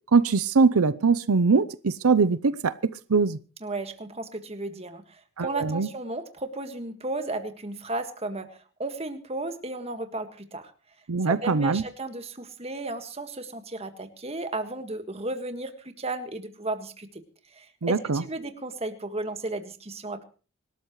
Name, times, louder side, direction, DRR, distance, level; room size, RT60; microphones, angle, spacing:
voice 1, 0.1-3.4 5.4-5.9 11.1-11.8 17.8-18.2, right 4 dB, 90° right, 0.7 m, -22 dB
voice 2, 3.6-10.7 11.3-17.2 17.5-20.2, right 2 dB, 30° right, 1.7 m, -34 dB
25.5 x 13.0 x 3.2 m
head